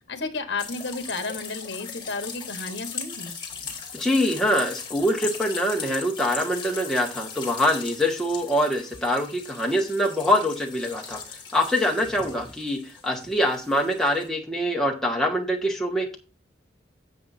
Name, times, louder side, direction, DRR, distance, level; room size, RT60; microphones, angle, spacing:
voice 1, 0.1-3.4, left 3 dB, 70° left, 8 dB, 1.3 m, -32 dB
sound 1, 0.6-14.3, left 6 dB, 25° left, 1.8 m, -39 dB
voice 2, 3.9-11.2 11.5-16.2, equal, 5° left, -1 dB, 1.6 m, -24 dB
10.5 x 7.5 x 2.7 m, 0.34 s
head